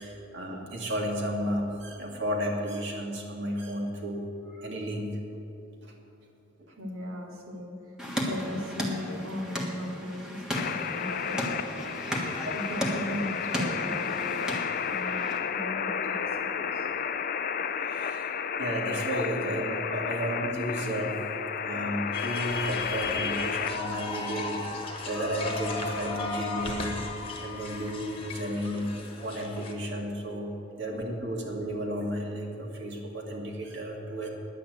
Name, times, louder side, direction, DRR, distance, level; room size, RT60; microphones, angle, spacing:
voice 1, 0.0-5.1 5.8-5.9 6.6-6.7 12.4-12.5 17.9-18.3 18.6-21.2 21.6-27.0 27.4-28.9 29.2-30.5 30.8-34.3, equal, 55° right, 0 dB, 2.1 m, -33 dB
voice 2, 6.8-8.0 8.2-12.0 12.5-16.9 18.5-18.6 19.0-19.2, left 1 dB, 80° right, -1 dB, 2.5 m, -38 dB
sound 1, 8.0-15.4, equal, 5° right, 1.4 m, -35 dB
sound 2, 10.5-23.8, left 7 dB, 40° left, 0.4 m, -32 dB
sound 3, 22.1-29.7, left 3 dB, 25° left, 1.4 m, -36 dB
10.5 x 8.5 x 9.2 m, 3.0 s
head